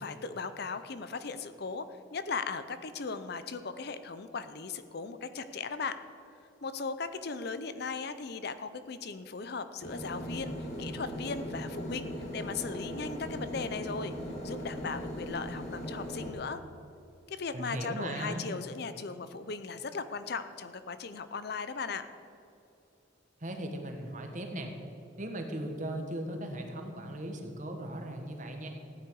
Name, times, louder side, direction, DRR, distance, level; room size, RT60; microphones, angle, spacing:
voice 1, 0.0-1.9 2.1-6.0 6.6-14.1 14.4-16.6 17.3-22.1, left 4 dB, 55° left, 11 dB, 0.6 m, -37 dB
sound 1, 9.8-16.3, equal, 35° left, 1.8 m, -39 dB
voice 2, 17.5-18.5 23.4-24.7 25.2-28.7, right 1 dB, 40° right, 4 dB, 1.4 m, -38 dB
15.5 x 9.7 x 4.7 m, 2.8 s
head